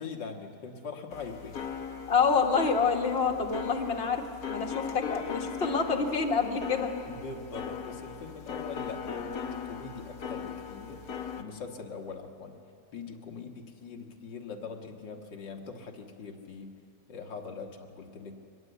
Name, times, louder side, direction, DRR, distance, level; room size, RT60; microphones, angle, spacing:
voice 1, 0.0-1.7 7.1-11.1 11.4-12.6 12.9-16.7 17.1-18.4, left 5 dB, 90° left, 2 dB, 2.1 m, -42 dB
sound 1, 1.1-11.4, left 7 dB, 60° left, 1.4 m, -39 dB
voice 2, 2.1-6.9, left 5 dB, 35° left, 3 dB, 1.5 m, -27 dB
23.5 x 20.5 x 8.1 m, 2.7 s
omnidirectional pair, 1.9 m